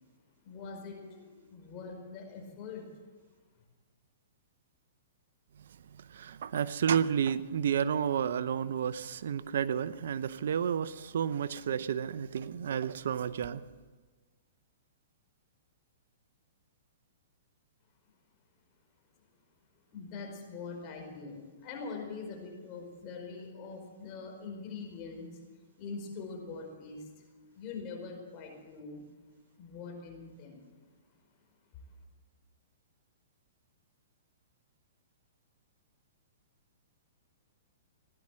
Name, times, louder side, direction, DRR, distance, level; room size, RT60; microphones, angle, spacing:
voice 1, 0.4-2.8 19.9-25.3 25.8-27.1 27.5-29.0 29.6-30.5, left 4 dB, 35° left, 2 dB, 4.7 m, -43 dB
voice 2, 6.1-13.6, right 8 dB, 70° right, 16 dB, 0.6 m, -31 dB
16.5 x 11.0 x 7.5 m, 1.4 s
hypercardioid pair, 130°, 0 cm